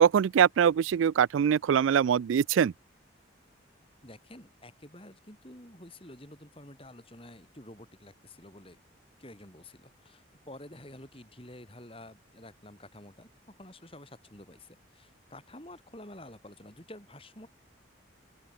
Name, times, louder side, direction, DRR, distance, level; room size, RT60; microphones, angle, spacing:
voice 1, 0.0-2.7, right 8 dB, 80° right, 0.3 m, -23 dB
voice 2, 4.0-8.8 9.2-17.5, left 1 dB, 30° left, 6.5 m, -49 dB
open air
head